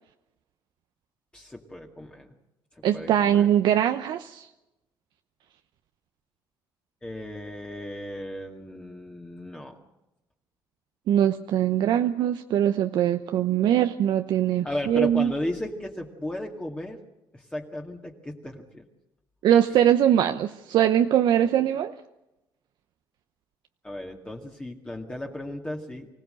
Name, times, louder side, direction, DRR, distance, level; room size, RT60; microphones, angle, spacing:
voice 1, 1.3-2.3 2.9-3.5 7.0-9.8 14.6-17.0 17.3-18.8 23.8-26.1, left 1 dB, 15° left, 1 dB, 2.1 m, -35 dB
voice 2, 2.8-4.5 11.1-15.3 19.4-21.9, right 10 dB, 70° right, 8 dB, 0.9 m, -22 dB
25.0 x 16.5 x 7.8 m, 0.94 s
cardioid pair, 110°, 8 cm